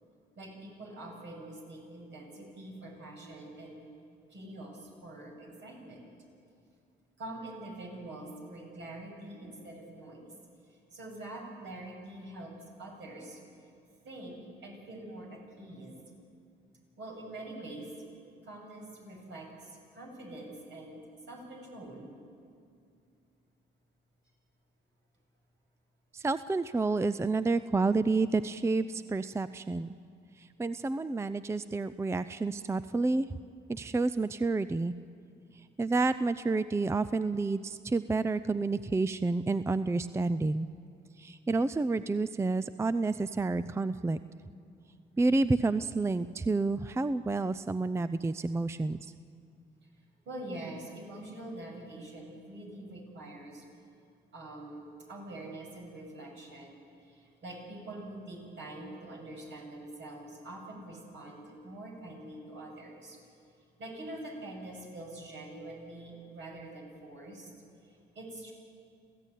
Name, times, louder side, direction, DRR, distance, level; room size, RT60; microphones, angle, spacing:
voice 1, 0.4-3.8 4.3-6.1 7.2-10.3 10.7-12.5 12.8-13.4 14.0-16.0 17.0-17.9 18.4-21.0 21.3-22.1 50.3-53.6 54.3-63.2 63.8-67.5 67.8-68.5, right 1 dB, 65° right, -1 dB, 7.3 m, -45 dB
voice 2, 26.1-30.0 30.4-33.4 33.7-34.9 35.8-40.7 41.2-44.2 45.2-49.1, right 3 dB, 15° right, 14 dB, 0.5 m, -29 dB
27.0 x 15.5 x 9.2 m, 2.4 s
cardioid pair, 90°, 20 cm